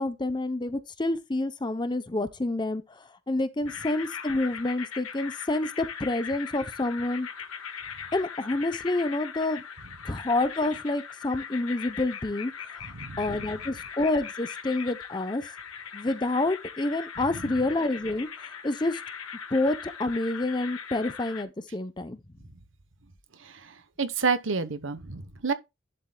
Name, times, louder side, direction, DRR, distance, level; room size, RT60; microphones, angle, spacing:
voice 1, 0.0-2.8 3.3-7.3 8.1-9.6 10.1-12.5 13.2-15.4 15.9-18.3 18.6-19.0 19.5-22.2, left 2 dB, 20° left, 0.7 m, -28 dB
sound 1, 3.7-21.4, left 7 dB, 90° left, 1.4 m, -40 dB
voice 2, 12.9-13.4 23.4-25.5, right 5 dB, 65° right, 1.1 m, -30 dB
11.5 x 7.5 x 2.3 m
head